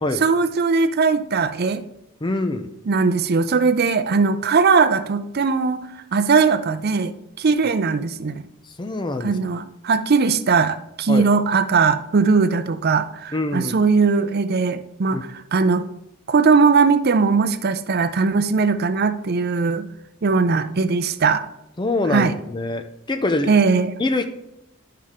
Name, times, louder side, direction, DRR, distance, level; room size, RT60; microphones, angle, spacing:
voice 1, 0.2-1.8 2.9-8.5 9.2-15.8 16.3-19.9 20.2-21.5 22.1-22.3 23.5-23.9, right 4 dB, 45° right, 12 dB, 0.5 m, -19 dB
voice 2, 2.2-2.7 8.8-9.4 11.1-11.3 13.3-13.7 15.1-15.2 21.8-23.6 24.0-24.2, left 2 dB, 20° left, 7 dB, 0.4 m, -24 dB
11.5 x 5.6 x 3.7 m, 0.86 s
head